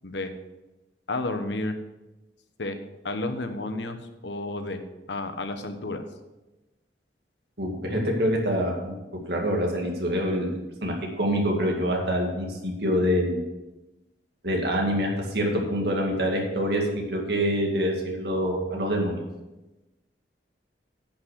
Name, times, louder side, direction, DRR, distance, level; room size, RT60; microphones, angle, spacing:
voice 1, 1.1-1.8 2.6-2.8 3.0-4.0 4.2-4.8 5.1-6.0, left 2 dB, 85° left, 8 dB, 1.1 m, -31 dB
voice 2, 7.6-8.9 9.3-10.5 10.8-13.4 14.4-19.2, equal, 65° right, 0 dB, 2.2 m, -26 dB
10.5 x 6.3 x 6.5 m, 1.0 s
head